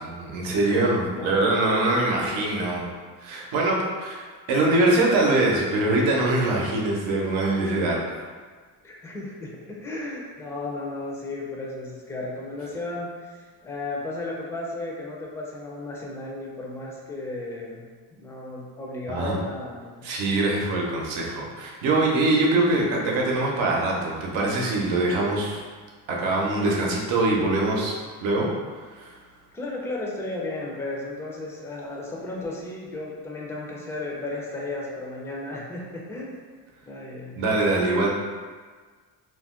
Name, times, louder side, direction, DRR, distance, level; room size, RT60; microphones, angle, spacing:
voice 1, 0.0-2.9 3.2-8.0 19.1-19.4 20.0-25.6 26.1-27.9 28.2-28.5 28.9-29.1 37.3-38.1, right 2 dB, 80° right, -2 dB, 0.8 m, -23 dB
voice 2, 1.1-1.5 8.8-17.8 18.2-20.1 29.5-36.4 36.9-37.4, left 2 dB, 5° left, -3 dB, 0.4 m, -34 dB
2.5 x 2.1 x 3.6 m, 1.5 s
cardioid pair, 100°, 46 cm